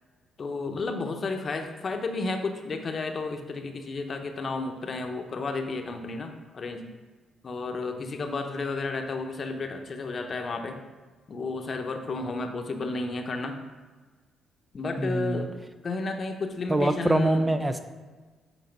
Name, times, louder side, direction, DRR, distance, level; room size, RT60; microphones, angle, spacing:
voice 1, 0.4-6.9 7.4-10.8 11.3-13.6 14.7-15.5 15.8-17.5, left 3 dB, 45° left, 5 dB, 0.9 m, -32 dB
voice 2, 15.0-15.5 16.7-17.8, right 1 dB, 15° right, 8 dB, 0.4 m, -24 dB
8.1 x 4.1 x 5.2 m, 1.3 s
cardioid pair, 90°, 0 cm